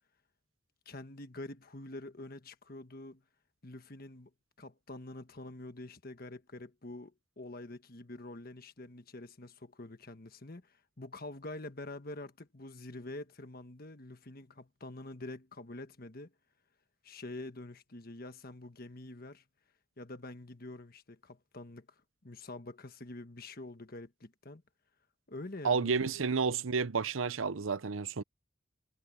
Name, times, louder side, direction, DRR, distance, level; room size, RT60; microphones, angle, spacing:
voice 1, 0.8-3.2 3.6-4.3 4.6-16.3 17.0-19.4 20.0-21.9 22.2-24.6 25.3-26.2, left 2 dB, 45° left, 1.4 m, -46 dB
voice 2, 25.6-28.2, right 5 dB, 80° right, 0.8 m, -31 dB
head